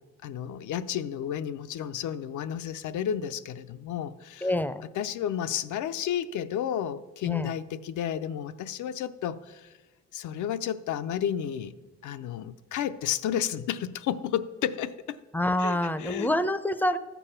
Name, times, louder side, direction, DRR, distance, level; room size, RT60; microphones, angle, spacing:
voice 1, 0.2-4.5 5.0-9.7 10.1-11.8 12.0-15.2 15.6-16.3, left 9 dB, 75° left, 12 dB, 0.6 m, -32 dB
voice 2, 4.4-4.8 7.2-7.5 15.3-17.0, left 1 dB, 5° left, 13 dB, 0.5 m, -27 dB
13.5 x 7.0 x 5.6 m, 1.3 s
cardioid pair, 90°, 30 cm